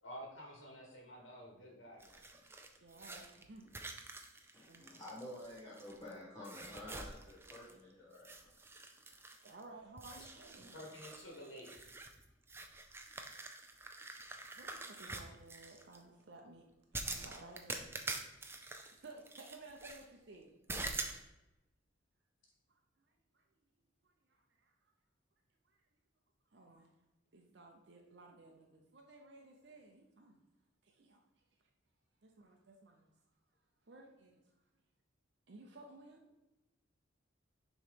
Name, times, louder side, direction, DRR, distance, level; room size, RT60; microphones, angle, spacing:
voice 1, 0.0-2.2 10.2-10.3 10.7-11.8, equal, 75° left, -1 dB, 1.4 m, -51 dB
sound 1, 2.0-6.1 6.4-7.8 8.1-9.6 10.0-16.0 16.9-20.0 20.7-21.2, right 3 dB, 10° right, 0.4 m, -46 dB
voice 2, 2.8-3.7 4.6-4.9 9.4-10.8 14.6-16.6 16.9-17.9 18.8-20.5 22.7-23.0 23.3-23.4 24.0-24.7 25.6-25.8 26.5-26.9 27.3-30.4 30.8-31.2 32.2-33.1 33.9-34.6 35.5-36.2, right 2 dB, 55° right, 1 dB, 0.7 m, -56 dB
voice 3, 4.5-8.5 9.1-9.2, left 1 dB, 15° left, -8 dB, 1.2 m, -50 dB
6.6 x 3.1 x 5.1 m, 1.0 s
head